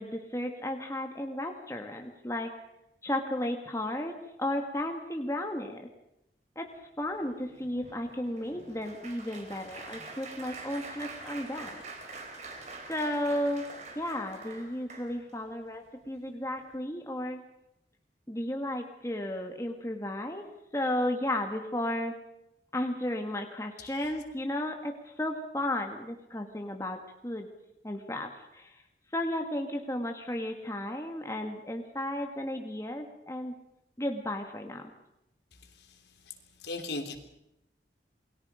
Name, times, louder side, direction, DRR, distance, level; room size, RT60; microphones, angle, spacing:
voice 1, 0.0-2.5 3.0-4.1 4.4-5.9 6.6-6.7 7.0-11.8 12.9-13.7 14.0-17.4 18.3-20.5 20.7-22.1 22.7-27.5 27.8-28.8 29.1-33.5 34.0-34.8, left 1 dB, 15° left, 3 dB, 1.9 m, -34 dB
Applause, 7.1-15.4 16.0-16.3 16.6-16.7, right 3 dB, 40° right, 4.2 m, -45 dB
voice 2, 36.6-37.2, left 2 dB, 75° left, 5 dB, 3.5 m, -36 dB
28.5 x 21.5 x 5.1 m, 0.85 s
head